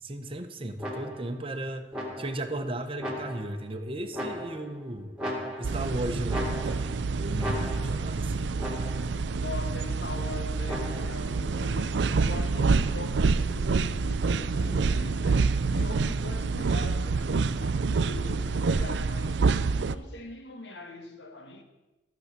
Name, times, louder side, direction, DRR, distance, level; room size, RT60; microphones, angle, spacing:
voice 1, 0.0-1.8 2.2-5.2 5.6-8.5, right 1 dB, 30° right, 6 dB, 1.0 m, -35 dB
sound 1, 0.8-1.4 1.9-2.5 3.0-3.7 4.1-4.8 5.2-5.9 6.3-7.0 7.4-8.1 8.6-9.2 10.7-11.3, equal, 5° right, 2.3 m, -36 dB
sound 2, 5.6-20.0, right 4 dB, 80° right, 0.5 m, -27 dB
voice 2, 9.4-19.4 19.9-21.6, left 2 dB, 80° left, 5 dB, 1.7 m, -42 dB
13.5 x 7.1 x 6.7 m, 1.0 s
head